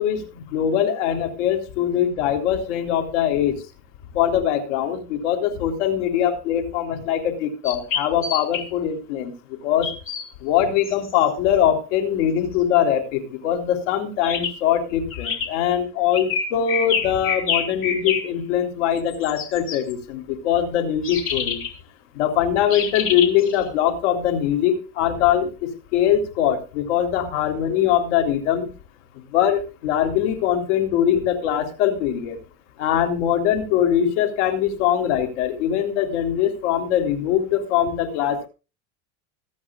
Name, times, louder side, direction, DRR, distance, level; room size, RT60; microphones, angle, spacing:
voice 1, 0.0-3.6 4.1-9.3 9.6-9.9 10.4-21.6 22.1-28.7 29.3-32.4 32.8-38.5, left 10 dB, 80° left, 5 dB, 3.5 m, -22 dB
sound 1, 7.6-8.6 9.8-10.2 10.8-11.1 14.2-14.6 15.1-15.5 16.1-18.2 19.0-19.9 21.0-21.7 22.7-23.6, left 6 dB, 40° left, 3.3 m, -26 dB
25.0 x 8.8 x 2.4 m, 0.32 s
supercardioid pair, 145°, 34 cm